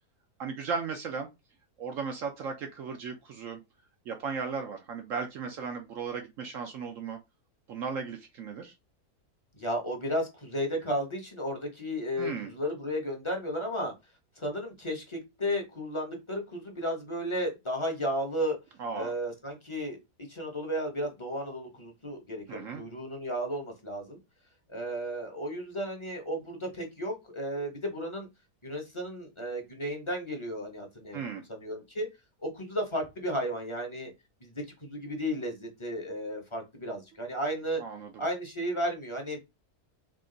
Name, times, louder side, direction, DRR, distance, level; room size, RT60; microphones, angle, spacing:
voice 1, 0.4-1.3 1.8-3.6 4.1-7.2 7.7-8.7 12.2-12.5 18.8-19.1 22.5-22.8 31.1-31.4 37.8-38.3, right 5 dB, 65° right, 5 dB, 0.9 m, -36 dB
voice 2, 9.5-13.9 14.4-18.6 18.9-20.0 20.3-24.2 24.7-28.3 28.6-31.2 31.5-32.1 32.4-34.1 34.4-37.8 38.2-39.4, equal, 25° left, 2 dB, 0.7 m, -33 dB
3.6 x 2.5 x 3.8 m, 0.23 s
omnidirectional pair, 1.7 m